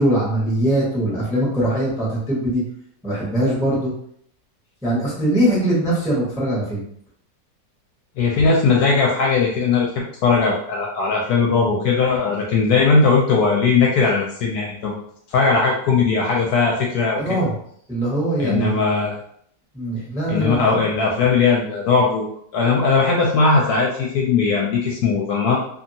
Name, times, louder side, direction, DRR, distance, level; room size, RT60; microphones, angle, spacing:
voice 1, 0.0-2.6 3.0-3.9 4.8-6.8 17.2-17.5 17.9-18.8 19.7-20.8, right 1 dB, 5° right, -6 dB, 0.6 m, -21 dB
voice 2, 8.2-14.9 15.3-17.2 18.4-19.2 20.3-22.3 22.5-25.6, left 4 dB, 70° left, -1 dB, 1.0 m, -18 dB
2.7 x 2.7 x 2.6 m, 0.67 s
omnidirectional pair, 1.9 m